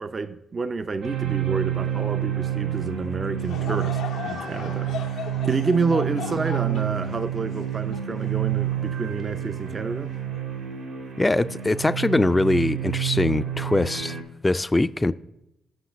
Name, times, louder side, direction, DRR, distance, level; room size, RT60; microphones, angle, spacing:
voice 1, 0.0-4.9 5.4-10.1, right 4 dB, 40° right, 0.5 m, -29 dB
sound 1, 1.0-14.2, right 11 dB, 90° right, 1.7 m, -29 dB
Laughter / Crowd, 3.4-8.9 9.4-9.5 10.3-10.6, left 8 dB, 80° left, 0.6 m, -37 dB
voice 2, 11.2-14.2 14.4-15.1, left 2 dB, 20° left, 0.3 m, -22 dB
8.1 x 5.8 x 6.0 m
supercardioid pair, 50°, 0 cm